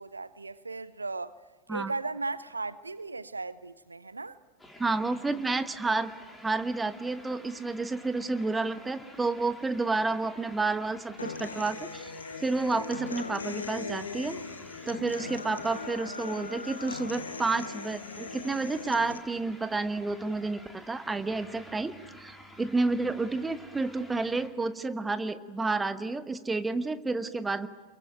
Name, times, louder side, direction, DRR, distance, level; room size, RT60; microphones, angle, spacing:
voice 1, 0.0-1.3 1.7-4.4, right 3 dB, 80° right, 0.8 m, -36 dB
sound 1, 4.6-24.5, equal, 5° left, 5.0 m, -51 dB
voice 2, 4.8-6.1 6.4-12.1 12.4-14.4 14.8-27.7, right 3 dB, 10° right, 1.2 m, -30 dB
Human voice / Acoustic guitar, 11.2-19.2, left 4 dB, 75° left, 1.8 m, -39 dB
28.0 x 22.5 x 9.0 m
figure-of-eight pair, 90°, 0 cm